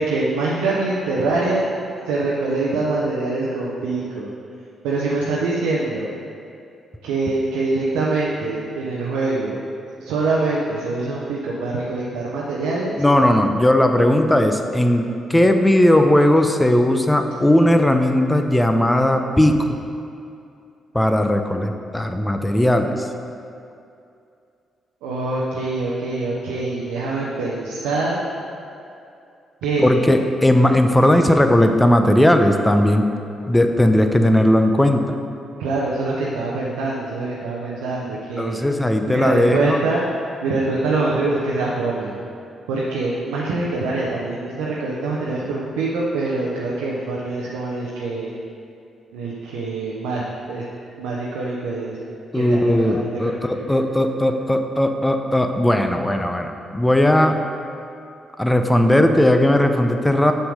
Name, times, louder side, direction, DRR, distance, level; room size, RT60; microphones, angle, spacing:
voice 1, 0.0-1.6 2.1-4.3 4.8-6.1 7.0-9.6 10.0-13.0 25.0-28.3 29.6-29.9 35.6-38.6 39.0-40.1 40.4-42.2 42.7-48.3 49.1-50.2 50.5-50.6 51.0-52.0 52.3-53.6, right 3 dB, 85° right, -5 dB, 0.7 m, -24 dB
voice 2, 13.0-19.8 20.9-23.1 29.8-33.1 33.5-35.2 38.4-39.8 52.3-57.4 58.4-60.3, left 1 dB, 10° left, 6 dB, 0.7 m, -17 dB
5.9 x 5.6 x 4.9 m, 2.6 s
supercardioid pair, 50°, 0 cm